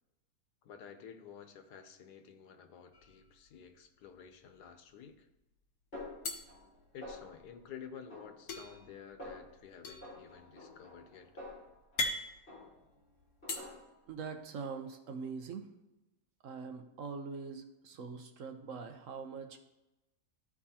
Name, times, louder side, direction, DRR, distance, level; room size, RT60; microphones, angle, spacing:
voice 1, 0.6-5.3 6.9-11.3, left 7 dB, 90° left, 7 dB, 1.4 m, -51 dB
sound 1, 2.9-3.8 4.2-4.3 4.6-5.3 6.2-7.5 8.5-13.6, left 2 dB, 65° left, 1.3 m, -41 dB
Snare drum, 5.9-6.7 7.0-7.6 8.1-8.9 9.2-9.6 10.0-12.1 12.5-13.0 13.4-14.1, left 2 dB, 40° left, 3.5 m, -49 dB
voice 2, 14.1-15.7 16.4-19.6, right 5 dB, 60° right, 6 dB, 1.0 m, -43 dB
14.0 x 4.6 x 2.8 m, 0.98 s
omnidirectional pair, 1.7 m